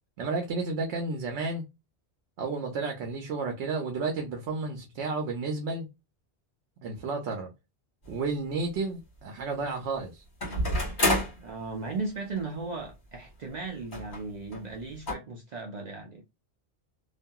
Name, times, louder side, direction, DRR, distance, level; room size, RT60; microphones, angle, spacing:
voice 1, 0.2-1.6 2.4-5.9 6.8-7.5 8.1-10.2, right 3 dB, 85° right, 0.9 m, -32 dB
sound 1, 8.0-8.1 10.4-11.4 12.4-12.5 12.7-12.8 13.9-14.2 14.5-14.6 15.1-15.2, left 1 dB, 45° left, 1.6 m, -28 dB
voice 2, 11.4-16.2, right 3 dB, 50° right, 0.5 m, -36 dB
2.7 x 2.4 x 2.2 m
omnidirectional pair, 1.1 m